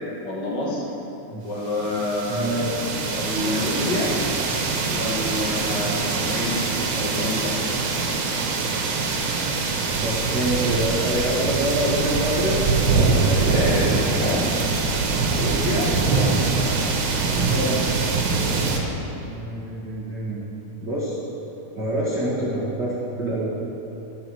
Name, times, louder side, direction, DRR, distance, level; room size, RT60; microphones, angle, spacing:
voice 1, 0.2-0.8 1.4-2.8 3.1-4.1 4.9-6.6 6.9-7.5 13.1-14.7 15.3-16.5, left 2 dB, 50° left, -4 dB, 1.4 m, -28 dB
sound 1, 1.7-18.8, right 4 dB, 75° right, 2.8 m, -23 dB
voice 2, 2.2-2.7 10.0-13.6 16.3-16.7 17.3-18.0 19.2-20.4 20.8-21.2 21.7-23.5, right 1 dB, 50° right, -9 dB, 1.3 m, -26 dB
13.0 x 5.8 x 6.1 m, 3.0 s
omnidirectional pair, 4.4 m